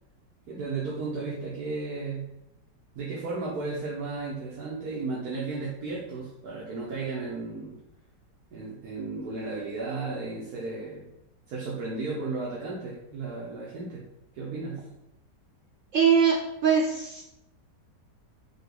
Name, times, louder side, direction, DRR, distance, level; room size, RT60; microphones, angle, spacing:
voice 1, 0.5-2.2 3.0-7.7 8.5-11.1 11.5-14.0 14.3-14.8, right 3 dB, 65° right, -5 dB, 1.2 m, -34 dB
voice 2, 15.9-16.4 16.6-17.2, right 7 dB, 85° right, 0 dB, 0.6 m, -21 dB
4.9 x 2.3 x 4.6 m, 0.88 s
omnidirectional pair, 1.9 m